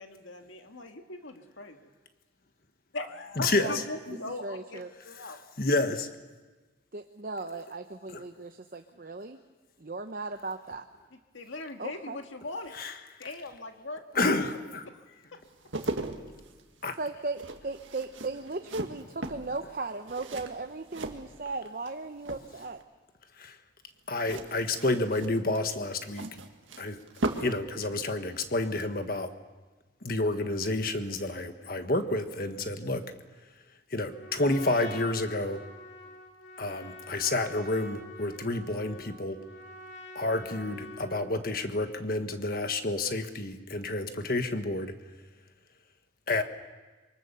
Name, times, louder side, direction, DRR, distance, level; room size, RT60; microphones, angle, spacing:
voice 1, 0.0-1.9 2.9-5.4 11.3-12.8 13.2-15.4 31.8-31.9, left 2 dB, 90° left, 5 dB, 1.8 m, -40 dB
voice 2, 3.4-3.7 5.6-6.1 12.8-12.9 14.1-14.8 16.8-16.9 23.4-23.5 24.1-26.2 26.8-27.0 27.4-29.3 30.0-33.0 33.9-35.6 36.6-39.4 40.1-44.9 46.3-46.4, left 2 dB, 50° left, 8 dB, 1.4 m, -29 dB
voice 3, 4.2-4.9 6.9-9.4 9.8-10.8 11.8-12.2 17.0-22.8, right 3 dB, 50° right, 7 dB, 0.8 m, -37 dB
sound 1, 15.4-21.9 22.2-22.8 24.1-27.6 27.9-28.1, right 2 dB, 90° right, 1.8 m, -38 dB
Trumpet, 34.0-41.4, left 1 dB, 70° left, 3.2 m, -46 dB
25.5 x 23.5 x 7.0 m, 1.3 s
head